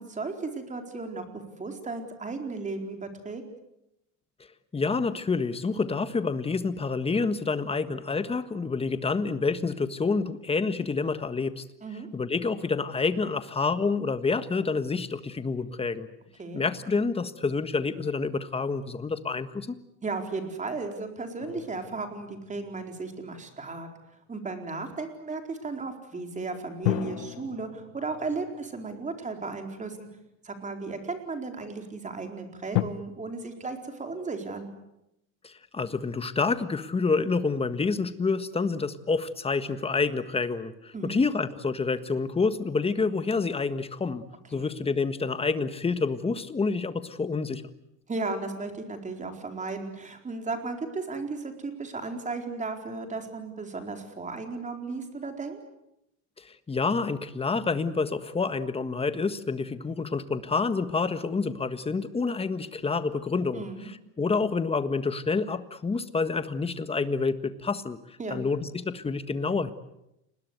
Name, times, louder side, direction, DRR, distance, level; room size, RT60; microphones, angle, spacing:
voice 1, 0.0-3.4 11.8-12.1 16.4-16.7 20.0-23.9 24.3-30.1 30.4-34.7 40.9-41.2 44.5-44.7 48.1-55.6 63.5-63.9 68.2-68.4, right 3 dB, 20° right, 5 dB, 4.3 m, -35 dB
voice 2, 4.7-11.6 12.1-16.1 16.5-19.7 35.4-44.2 44.5-47.6 56.4-68.0 68.3-69.7, left 4 dB, 15° left, 11 dB, 1.5 m, -28 dB
sound 1, 21.4-24.0 26.8-30.2 30.9-31.0 32.7-32.8, left 18 dB, 80° left, 1.5 m, -34 dB
29.5 x 21.0 x 8.1 m, 0.85 s
supercardioid pair, 125°, 40 cm